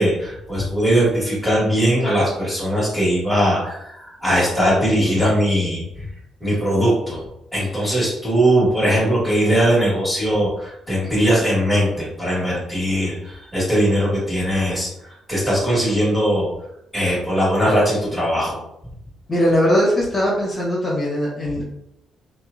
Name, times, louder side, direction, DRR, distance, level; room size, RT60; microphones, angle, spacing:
voice 1, 0.0-5.8 6.4-7.2 7.5-14.9 15.3-16.5 16.9-18.6, equal, 5° right, -7 dB, 1.4 m, -20 dB
voice 2, 19.3-21.6, equal, 30° left, -6 dB, 1.1 m, -20 dB
2.8 x 2.2 x 2.5 m, 0.80 s
cardioid pair, 90°, 0 cm